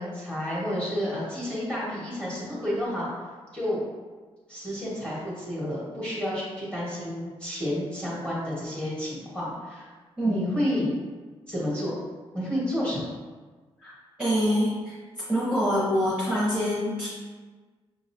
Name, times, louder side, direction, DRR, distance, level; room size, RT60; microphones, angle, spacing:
voice 1, 0.0-3.1 3.5-3.8 4.5-9.9 10.2-10.9 11.5-11.9 12.3-13.1, left 1 dB, 10° left, -7 dB, 1.3 m, -30 dB
voice 2, 10.2-10.5 13.8-13.9 14.2-15.0 15.3-17.1, equal, 10° right, -10 dB, 0.9 m, -25 dB
5.8 x 2.9 x 2.6 m, 1.4 s
wide cardioid pair, 175°, 10 cm